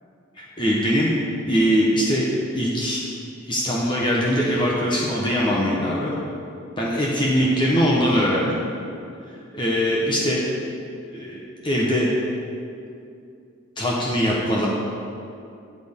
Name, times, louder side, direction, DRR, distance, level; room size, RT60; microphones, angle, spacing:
voice 1, 0.4-1.1 1.5-2.3 2.5-3.0 3.4-6.1 6.8-8.6 9.5-10.4 11.1-12.1 13.8-14.7, equal, 25° left, -5 dB, 1.1 m, -21 dB
12.0 x 8.8 x 3.7 m, 2.5 s
head